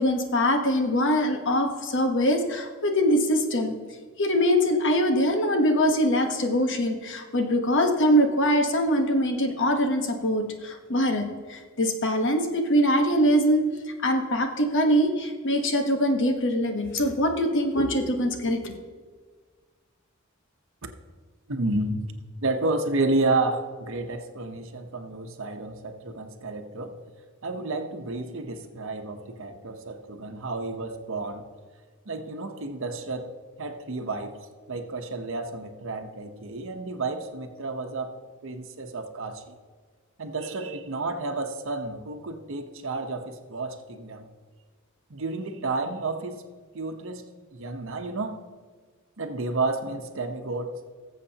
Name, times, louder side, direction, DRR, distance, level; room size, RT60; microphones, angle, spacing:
voice 1, 0.0-3.7 4.2-11.2 11.5-13.6 14.0-18.7, equal, 60° left, 5 dB, 1.2 m, -23 dB
voice 2, 21.5-22.1 22.4-27.0 27.4-31.5 32.1-33.3 33.6-34.4 34.7-38.2 38.4-39.6 40.2-44.3 45.1-46.4 46.7-47.2 47.5-48.5 49.2-50.8, right 2 dB, 65° right, 6 dB, 1.0 m, -31 dB
19.0 x 7.5 x 2.9 m, 1.5 s
head